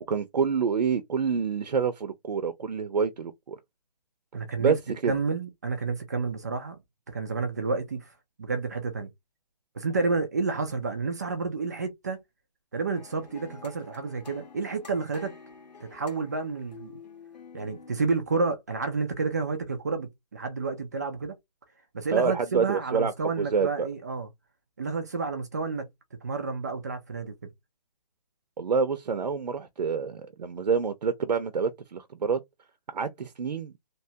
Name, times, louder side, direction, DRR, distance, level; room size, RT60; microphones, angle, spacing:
voice 1, 0.1-3.6 4.6-5.1 22.1-23.9 28.6-32.4 32.9-33.7, right 5 dB, 85° right, 0.7 m, -27 dB
voice 2, 4.3-4.8 5.1-6.8 7.1-8.1 8.4-9.1 9.7-12.2 12.7-15.3 15.8-16.9 17.5-21.3 21.9-24.3 24.8-25.9 26.2-27.3, right 4 dB, 25° right, 0.4 m, -30 dB
sound 1, 12.9-18.0, left 5 dB, 90° left, 1.1 m, -48 dB
3.0 x 2.3 x 2.7 m
hypercardioid pair, 165°, 21 cm